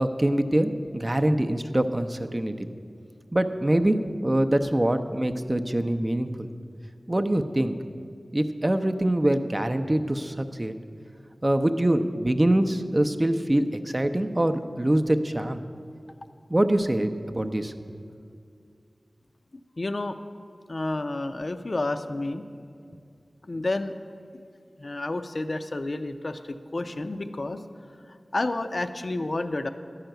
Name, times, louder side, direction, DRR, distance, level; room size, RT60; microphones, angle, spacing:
voice 1, 0.0-2.7 3.3-4.0 4.2-6.5 7.1-7.8 8.3-10.8 11.4-15.6 16.5-18.0, right 1 dB, 25° right, 7 dB, 0.6 m, -24 dB
voice 2, 19.8-20.2 20.7-22.5 23.5-23.9 24.8-29.7, left 2 dB, 55° left, 9 dB, 0.5 m, -30 dB
11.5 x 5.7 x 9.0 m, 2.3 s
wide cardioid pair, 70°, 0 cm